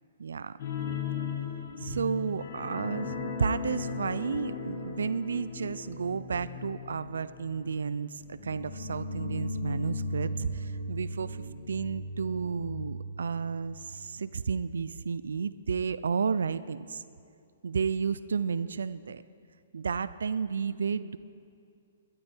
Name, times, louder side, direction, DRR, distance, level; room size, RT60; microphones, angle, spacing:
voice 1, 0.2-0.6 1.8-17.0 17.6-19.2 19.7-21.2, right 5 dB, 85° right, 16 dB, 0.3 m, -32 dB
sound 1, 0.6-13.9 14.2-14.3 14.7-14.8, left 3 dB, 55° left, 1.7 m, -37 dB
12.5 x 12.0 x 4.5 m, 2.4 s
hypercardioid pair, 155°, 0 cm